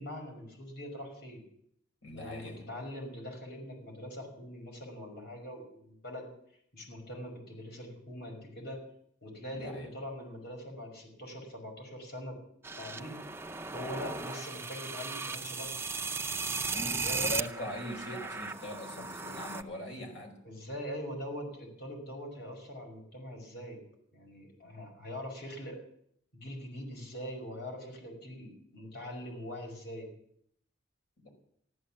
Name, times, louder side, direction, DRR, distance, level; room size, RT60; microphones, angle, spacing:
voice 1, 0.0-1.4 2.1-6.3 6.7-8.8 9.2-12.4 12.8-13.2 13.7-15.7 16.7-17.3 20.4-23.8 24.1-25.8 26.3-30.1, equal, 55° left, 2 dB, 5.3 m, -42 dB
voice 2, 2.0-2.6 9.5-9.9 16.7-20.3 31.2-31.3, left 1 dB, 75° left, 3 dB, 5.2 m, -41 dB
sound 1, 12.6-19.6, right 4 dB, 10° right, 0.5 m, -36 dB
14.5 x 12.0 x 7.3 m, 0.69 s
head